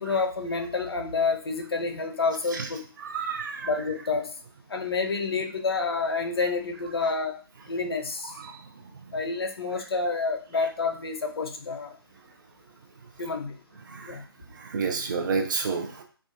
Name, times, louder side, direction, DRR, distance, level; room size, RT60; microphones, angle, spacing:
voice 1, 0.0-2.8 3.6-4.3 4.7-7.4 7.7-8.3 9.1-11.9 13.2-13.6 14.0-14.2, left 4 dB, 70° left, 5 dB, 0.5 m, -28 dB
voice 2, 3.0-3.7 8.4-8.6 13.9-14.1 14.6-16.0, right 5 dB, 50° right, 2 dB, 0.5 m, -30 dB
2.3 x 2.3 x 2.6 m, 0.39 s
figure-of-eight pair, 140°, 13 cm